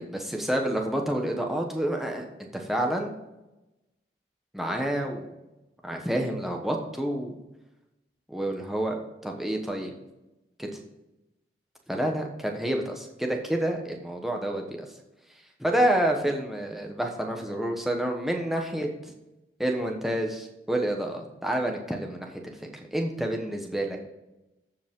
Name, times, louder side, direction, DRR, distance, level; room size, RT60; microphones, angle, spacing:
voice 1, 0.0-2.2 2.5-3.1 4.5-5.3 5.8-7.4 8.3-9.0 9.2-9.9 10.6-10.7 11.9-14.8 15.6-18.9 19.6-22.3 22.6-24.0, right 1 dB, ahead, 2 dB, 1.1 m, -28 dB
14.0 x 5.1 x 3.7 m, 0.98 s
head